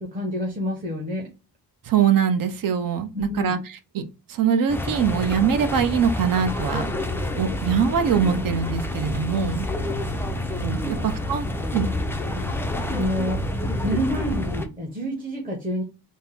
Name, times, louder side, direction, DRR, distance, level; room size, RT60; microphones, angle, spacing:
voice 1, 0.0-1.3 3.1-3.5 8.3-8.4 9.4-9.6 10.8-11.0 12.3-12.5 12.9-13.4 13.8-15.8, equal, 20° right, 1.1 m, -28 dB
voice 2, 1.8-3.6 3.9-4.0 4.3-6.9 7.3-9.7 10.6-11.4 11.7-11.9, right 7 dB, 55° right, 0.7 m, -22 dB
sound 1, 4.7-14.7, left 2 dB, 5° left, 0.3 m, -28 dB
sound 2, 6.9-14.4, right 4 dB, 85° right, 1.0 m, -37 dB
4.2 x 2.0 x 3.5 m
cardioid pair, 135°, 41 cm